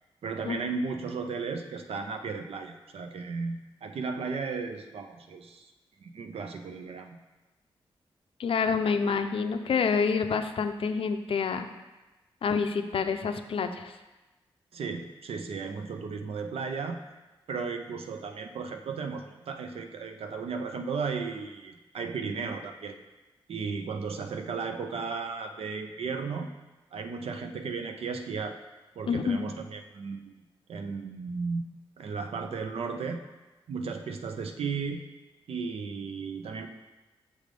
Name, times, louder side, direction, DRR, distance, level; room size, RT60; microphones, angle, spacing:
voice 1, 0.2-5.7 6.0-7.2 14.7-17.0 17.5-23.0 23.5-26.5 26.9-28.6 29.0-30.4 30.7-31.7 32.0-33.2 33.7-35.0 35.5-36.7, right 5 dB, 80° right, 6 dB, 0.5 m, -35 dB
voice 2, 8.4-11.7 12.4-14.0 29.1-29.5, left 5 dB, 65° left, 8 dB, 0.4 m, -27 dB
6.3 x 3.3 x 5.2 m, 1.1 s
cardioid pair, 75°, 10 cm